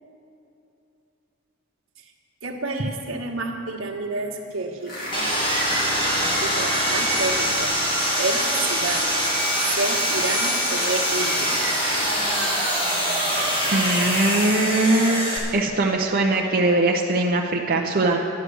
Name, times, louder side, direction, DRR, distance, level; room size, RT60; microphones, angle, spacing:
voice 1, 2.4-5.3 5.9-7.7 8.1-9.1 9.7-11.6, right 3 dB, 75° right, 2 dB, 1.4 m, -30 dB
sound 1, 4.8-15.0, left 1 dB, 45° left, 2.2 m, -30 dB
Sawing, 5.1-15.4, equal, 25° left, 2.5 m, -24 dB
voice 2, 13.7-15.2 15.5-18.2, right 2 dB, 45° right, -1 dB, 0.8 m, -21 dB
11.0 x 10.5 x 6.3 m, 2.6 s
head